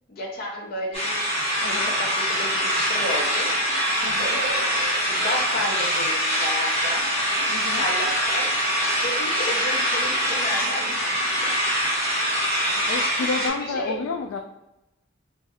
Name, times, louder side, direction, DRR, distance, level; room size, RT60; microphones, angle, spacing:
voice 1, 0.1-1.2 1.6-3.5 3.8-7.0 7.4-11.5 13.4-14.0, left 1 dB, 50° left, 0 dB, 0.6 m, -33 dB
sound 1, 0.9-13.5, equal, 30° left, 1.2 m, -24 dB
voice 2, 1.6-1.9 4.0-4.4 7.5-7.9 12.9-14.4, left 4 dB, 90° left, 3 dB, 0.3 m, -30 dB
2.5 x 2.4 x 4.0 m, 0.92 s
head